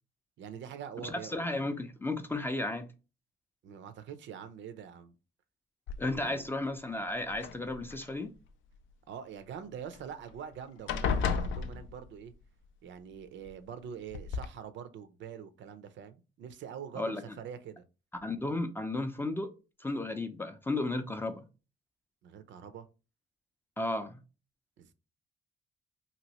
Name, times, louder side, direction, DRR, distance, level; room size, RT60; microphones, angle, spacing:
voice 1, 0.4-1.4 3.6-5.1 6.2-6.5 9.1-12.3 12.8-17.8 22.2-22.9 24.8-24.9, right 8 dB, 70° right, 0.5 m, -44 dB
voice 2, 1.0-2.9 6.0-8.3 17.0-17.2 18.2-19.5 19.8-21.4 23.8-24.2, left 2 dB, 10° left, 0.4 m, -34 dB
sound 1, 5.9-6.4 7.3-8.1 9.9-10.0 10.3-10.5 10.9-12.3 13.5-13.6 14.1-14.5, left 6 dB, 85° left, 0.4 m, -33 dB
2.9 x 2.6 x 2.9 m
cardioid pair, 90°, 20 cm